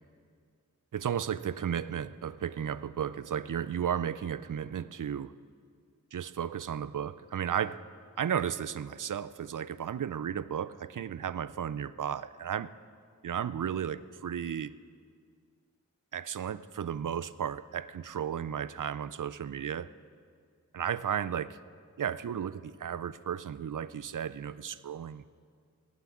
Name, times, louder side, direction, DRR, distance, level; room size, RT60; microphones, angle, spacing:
voice 1, 0.9-5.3 6.1-7.8 8.2-12.7 13.2-14.8 16.1-19.9 20.7-21.6 22.0-25.2, right 8 dB, 75° right, 16 dB, 0.5 m, -34 dB
19.0 x 7.8 x 7.3 m, 2.1 s
wide cardioid pair, 55°, 31 cm